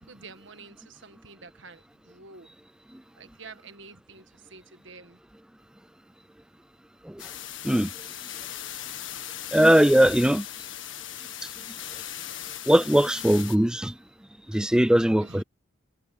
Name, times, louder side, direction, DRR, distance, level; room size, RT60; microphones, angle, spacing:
voice 1, 0.0-2.5 3.2-5.2 15.2-15.4, right 4 dB, 70° right, 1.4 m, -48 dB
sound 1, 7.2-13.6, left 11 dB, 75° left, 1.7 m, -38 dB
voice 2, 9.5-10.4 12.7-13.9 14.5-15.4, right 1 dB, 5° right, 0.4 m, -20 dB
head